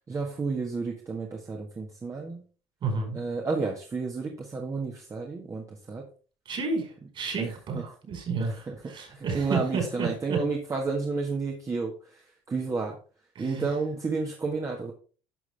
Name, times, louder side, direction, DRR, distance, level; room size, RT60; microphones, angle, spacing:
voice 1, 0.1-2.4 3.1-6.0 7.4-7.8 8.4-13.0 13.4-14.9, right 4 dB, 25° right, 0 dB, 1.7 m, -31 dB
voice 2, 2.8-3.2 6.5-10.4 13.3-13.6, right 4 dB, 45° right, 2 dB, 4.8 m, -31 dB
11.0 x 6.2 x 3.5 m, 0.38 s
cardioid pair, 110°, 12 cm